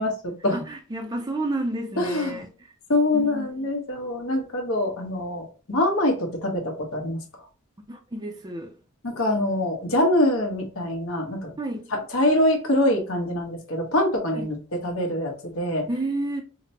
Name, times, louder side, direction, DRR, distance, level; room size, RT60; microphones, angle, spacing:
voice 1, 0.0-0.6 2.0-2.4 2.9-7.2 9.0-11.5 11.9-14.6 14.8-15.9, left 1 dB, 65° left, 1.1 m, -24 dB
voice 2, 0.5-2.5 3.1-3.5 7.9-8.7 11.6-11.9 14.3-14.5 15.9-16.4, right 1 dB, 20° right, 0.5 m, -30 dB
4.9 x 2.1 x 2.8 m
head